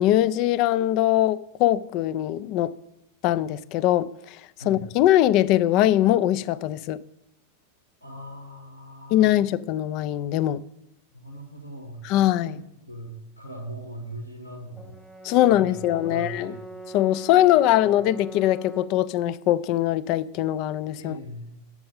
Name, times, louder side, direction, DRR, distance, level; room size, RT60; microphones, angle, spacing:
voice 1, 0.0-2.7 3.2-4.4 4.7-7.0 9.1-10.6 12.0-12.6 15.2-16.5 16.9-21.2, left 13 dB, 40° left, 0.3 m, -22 dB
voice 2, 8.0-9.3 11.1-15.0 15.5-16.6 17.8-18.1 21.0-21.6, right 1 dB, 90° left, 1.4 m, -40 dB
Brass instrument, 14.8-19.1, right 3 dB, ahead, 0.6 m, -41 dB
7.6 x 6.0 x 5.4 m
figure-of-eight pair, 90°, 0 cm